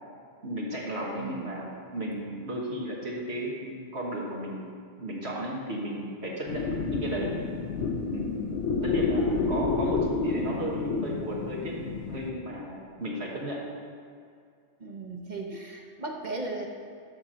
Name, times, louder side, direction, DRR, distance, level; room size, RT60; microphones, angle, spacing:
voice 1, 0.4-4.7 5.0-7.3 8.1-8.4 8.8-11.8 12.1-13.6, right 1 dB, 70° right, -3 dB, 1.6 m, -34 dB
voice 2, 1.0-1.6 8.7-9.6 14.8-16.7, right 2 dB, 40° right, 1 dB, 1.1 m, -38 dB
sound 1, 6.5-12.3, left 4 dB, 90° left, 1.1 m, -29 dB
13.0 x 4.3 x 6.2 m, 2.3 s
omnidirectional pair, 1.2 m